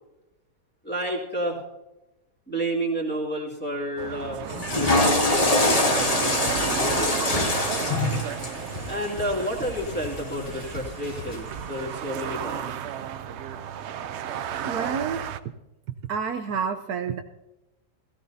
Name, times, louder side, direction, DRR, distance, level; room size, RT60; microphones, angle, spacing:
voice 1, 0.8-1.6 2.5-4.4 4.7-7.2 8.8-12.8, equal, 5° left, -4 dB, 2.4 m, -30 dB
sound 1, 4.0-15.4, right 9 dB, 90° right, 0.6 m, -33 dB
Water / Toilet flush, 4.5-10.7, left 2 dB, 25° left, 1.1 m, -25 dB
sound 2, 6.5-11.4, left 2 dB, 45° left, 2.8 m, -41 dB
voice 2, 14.6-15.3 16.1-17.2, right 6 dB, 70° right, 6 dB, 1.1 m, -29 dB
16.0 x 15.5 x 2.7 m, 0.94 s
omnidirectional pair, 1.8 m